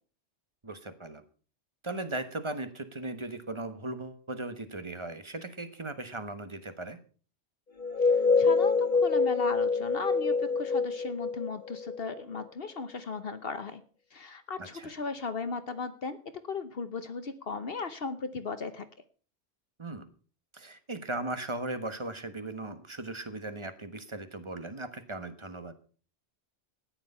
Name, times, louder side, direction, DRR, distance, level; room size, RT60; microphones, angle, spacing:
voice 1, 0.6-1.2 1.8-7.0 14.6-14.9 19.8-20.1 20.5-25.7, right 2 dB, 25° right, 10 dB, 1.3 m, -38 dB
sound 1, 7.8-12.4, left 4 dB, 40° left, 1.8 m, -26 dB
voice 2, 8.4-13.8 14.1-16.2 16.5-18.9, left 4 dB, 55° left, 11 dB, 1.1 m, -36 dB
13.5 x 10.0 x 5.5 m, 0.40 s
omnidirectional pair, 1.2 m